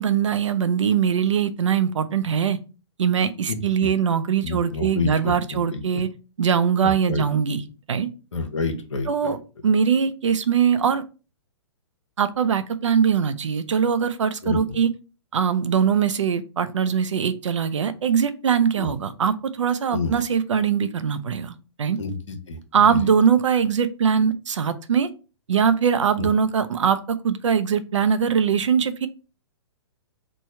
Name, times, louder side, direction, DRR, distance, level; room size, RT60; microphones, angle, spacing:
voice 1, 0.0-2.6 3.0-6.1 6.4-7.6 7.9-8.1 9.1-9.4 9.6-11.0 12.2-14.9 15.3-22.0 22.7-25.1 25.5-29.1, right 7 dB, 80° right, 0.5 m, -21 dB
voice 2, 3.5-3.9 4.4-6.0 6.8-7.2 8.3-9.4 14.4-14.8 18.8-18.9 19.9-20.2 22.0-23.1 26.2-26.3, left 4 dB, 85° left, 0.8 m, -29 dB
3.1 x 2.3 x 4.2 m
hypercardioid pair, 130°, 15 cm